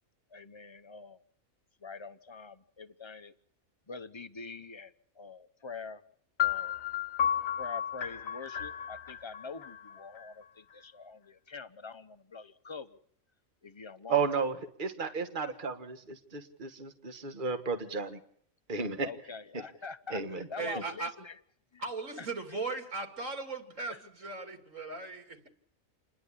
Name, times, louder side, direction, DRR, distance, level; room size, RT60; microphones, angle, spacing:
voice 1, 0.3-1.2 1.8-3.3 3.9-6.0 6.4-6.8 7.6-13.0 13.6-14.1 19.0-21.4 21.7-21.8 22.2-22.3 23.9-24.0, left 4 dB, 25° left, 0.9 m, -45 dB
sound 1, 6.4-10.2, left 9 dB, 80° left, 1.5 m, -33 dB
voice 2, 14.1-18.2 18.7-19.1 19.5-19.6 20.1-20.8, right 5 dB, 40° right, 1.7 m, -33 dB
voice 3, 20.6-21.1 21.8-25.5, right 3 dB, 70° right, 3.1 m, -38 dB
29.0 x 11.0 x 9.9 m
omnidirectional pair, 1.4 m